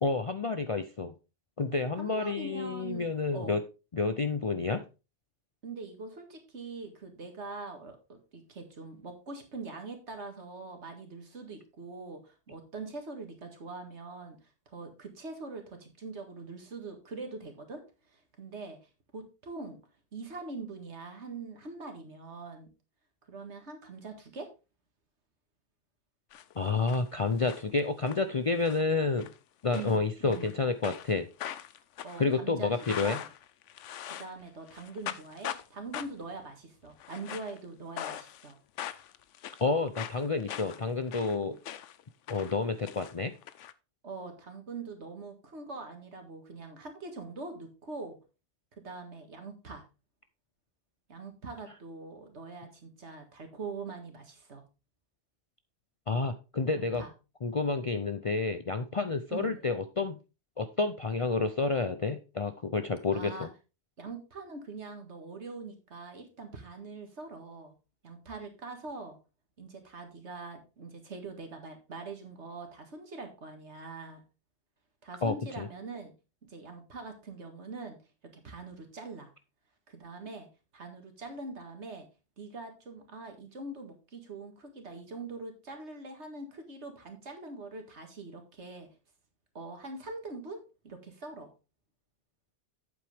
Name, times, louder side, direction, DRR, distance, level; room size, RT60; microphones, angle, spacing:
voice 1, 0.0-1.1 1.6-3.6 3.9-4.8 26.6-29.3 29.6-31.3 32.2-33.2 39.6-41.6 42.3-43.3 56.1-57.0 57.4-60.2 60.6-63.5 75.2-75.7, left 4 dB, 40° left, 9 dB, 0.5 m, -29 dB
voice 2, 2.0-3.6 5.6-14.4 14.7-17.8 18.1-18.8 19.1-19.8 20.1-22.7 23.3-24.5 29.7-30.6 32.0-33.3 34.1-38.6 44.0-48.2 48.8-49.9 51.1-54.6 56.7-57.1 59.3-59.8 63.1-63.5 64.0-67.7 68.0-69.2 69.6-74.2 75.0-76.1 76.5-78.0 78.3-79.3 79.9-80.5 80.7-82.1 82.4-88.9 89.5-91.5, right 3 dB, 70° right, 5 dB, 2.1 m, -43 dB
sound 1, 26.3-27.0 27.3-28.2 28.6-28.9 29.2-29.4 29.7-30.5 30.8-34.4 34.7-35.7 35.9-36.3 36.9-37.6 38.0-38.5 38.8-42.0 42.3-43.7, left 11 dB, 90° left, 1.0 m, -41 dB
8.7 x 7.8 x 3.4 m, 0.30 s
omnidirectional pair, 1.2 m